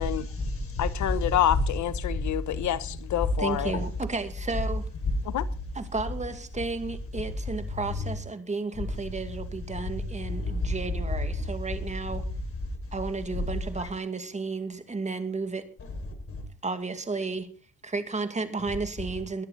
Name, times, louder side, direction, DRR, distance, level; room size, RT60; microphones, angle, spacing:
voice 1, 0.0-1.2 1.5-1.6 2.0-2.7 3.2-3.8 5.0-5.4 7.7-8.1 8.9-9.0 9.6-11.5 12.1-12.3 12.7-12.9 13.3-13.5 13.8-13.9 15.8-16.5, left 2 dB, 50° left, 6.1 m, -31 dB
voice 2, 0.8-3.7 5.2-5.5, left 12 dB, 70° left, 1.3 m, -27 dB
voice 3, 3.4-4.9 5.7-12.3 12.9-15.7 16.6-17.5 17.8-19.4, right 3 dB, 25° right, 2.4 m, -33 dB
21.5 x 10.5 x 4.2 m
cardioid pair, 90°, 30 cm